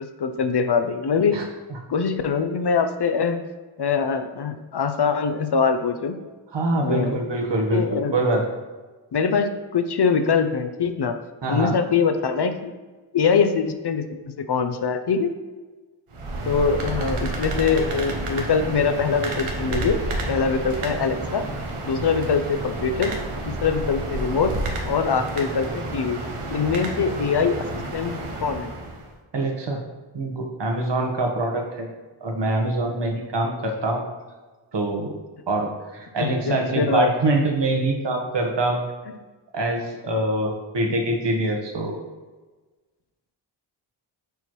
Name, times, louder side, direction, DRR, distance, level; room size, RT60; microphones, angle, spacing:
voice 1, 0.0-1.4 1.9-3.4 3.8-6.2 6.8-7.2 7.7-8.2 9.1-11.2 11.5-12.7 13.1-14.0 14.4-15.4 16.4-20.0 20.3-21.4 21.8-23.1 23.5-24.5 24.8-26.2 26.5-27.7 27.9-28.7 36.2-37.1, left 5 dB, 55° left, 8 dB, 0.6 m, -23 dB
voice 2, 6.5-7.8 8.1-8.4 11.4-11.8 26.9-27.0 29.3-29.8 30.1-31.9 32.2-34.0 34.7-35.1 35.5-38.8 39.5-42.0, right 2 dB, 55° right, 1 dB, 1.2 m, -24 dB
sound 1, 16.1-29.1, right 2 dB, 80° right, 1.0 m, -30 dB
6.8 x 4.4 x 3.1 m, 1.3 s
cardioid pair, 45°, 50 cm